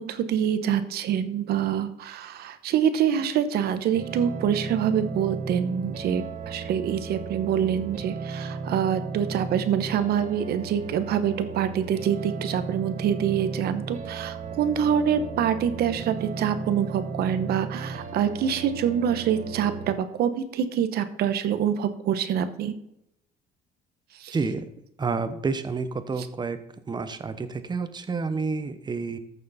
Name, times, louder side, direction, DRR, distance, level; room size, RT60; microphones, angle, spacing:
voice 1, 0.0-22.7 24.2-24.3, right 8 dB, 70° right, 11 dB, 1.1 m, -26 dB
sound 1, 3.9-19.9, right 4 dB, 45° right, 1.3 m, -35 dB
voice 2, 24.3-24.7 25.0-26.6 26.9-29.2, right 4 dB, 25° right, 11 dB, 1.0 m, -29 dB
14.0 x 6.6 x 4.2 m, 0.80 s
cardioid pair, 110°, 17 cm